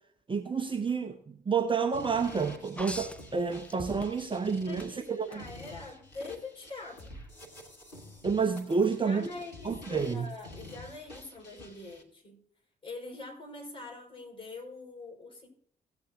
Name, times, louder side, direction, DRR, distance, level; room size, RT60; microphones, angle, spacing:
voice 1, 0.3-5.4 8.2-9.3 9.6-10.3, right 5 dB, 25° right, 6 dB, 0.9 m, -29 dB
sound 1, 1.9-12.0, left 1 dB, 90° left, 1.1 m, -49 dB
sound 2, 2.8-4.4 4.8-5.4 7.0-7.1, left 1 dB, 5° left, 0.8 m, -42 dB
voice 2, 4.7-7.1 8.9-12.4 12.8-15.5, left 3 dB, 25° left, -2 dB, 4.7 m, -44 dB
16.5 x 8.3 x 2.6 m, 0.64 s
figure-of-eight pair, 40°, 21 cm